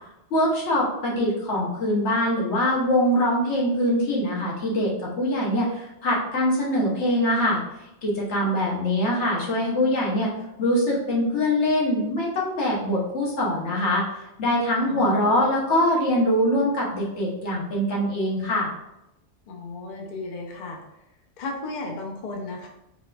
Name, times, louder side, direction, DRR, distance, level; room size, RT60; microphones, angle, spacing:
voice 1, 0.3-7.6 8.0-10.3 10.6-14.0 14.4-18.7, left 1 dB, 80° left, -3 dB, 1.2 m, -23 dB
voice 2, 14.9-15.5 19.5-20.8 21.4-22.7, left 2 dB, 55° left, 1 dB, 0.6 m, -35 dB
3.9 x 2.4 x 2.2 m, 0.89 s
omnidirectional pair, 1.2 m